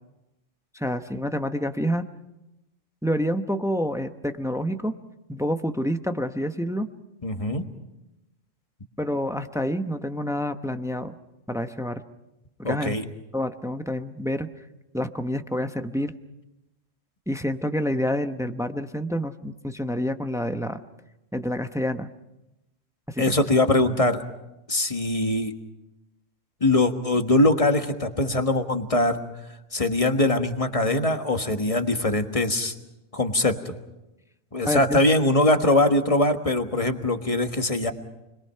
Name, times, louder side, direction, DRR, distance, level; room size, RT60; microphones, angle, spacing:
voice 1, 0.7-2.0 3.0-5.0 5.3-6.9 9.0-11.1 11.5-12.0 12.6-12.9 13.3-14.5 14.9-16.1 17.3-20.8 21.3-22.1 23.1-23.5 34.7-35.0, equal, 5° right, 7 dB, 0.7 m, -28 dB
voice 2, 7.2-7.6 12.6-13.0 23.2-24.2 24.7-25.5 26.6-29.2 29.7-32.7 33.1-33.7 34.5-37.9, left 2 dB, 30° left, 6 dB, 1.5 m, -22 dB
29.5 x 22.0 x 5.7 m, 0.96 s
omnidirectional pair, 1.3 m